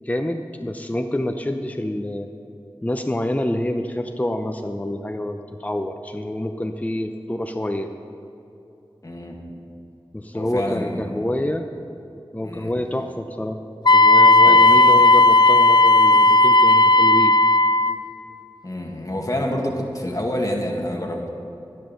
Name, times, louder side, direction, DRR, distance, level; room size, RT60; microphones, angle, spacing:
voice 1, 0.0-2.3 2.8-7.9 10.1-11.7 12.3-13.6 13.9-17.3, left 1 dB, 15° left, 5 dB, 0.7 m, -27 dB
voice 2, 9.0-9.4 10.3-11.2 12.4-12.7 14.4-14.7 18.6-21.3, left 1 dB, 40° left, 1 dB, 1.9 m, -27 dB
Wind instrument woodwind instrument, 13.9-18.0, left 2 dB, 55° left, 0.3 m, -13 dB
12.5 x 10.5 x 5.7 m, 2.8 s
wide cardioid pair, 40°, 9 cm